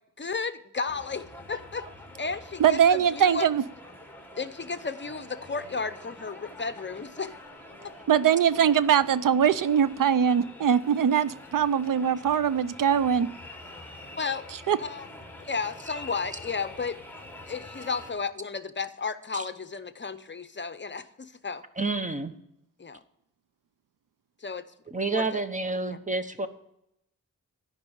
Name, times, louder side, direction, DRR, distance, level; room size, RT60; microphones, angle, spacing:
voice 1, 0.2-1.9 2.2-3.5 4.4-7.3 14.1-14.4 14.8-15.1 15.4-17.0 17.5-21.6 22.8-23.0 24.4-24.6 25.1-25.4 25.8-26.0, left 4 dB, 35° left, 12 dB, 0.7 m, -33 dB
sound 1, 0.9-18.1, left 1 dB, 5° left, 1.8 m, -46 dB
voice 2, 2.6-3.6 8.1-13.3 14.7-14.8, right 8 dB, 80° right, 15 dB, 0.6 m, -22 dB
voice 3, 21.8-22.3 24.9-26.5, right 3 dB, 25° right, 9 dB, 1.1 m, -29 dB
13.0 x 5.5 x 9.1 m, 0.79 s
wide cardioid pair, 90°, 32 cm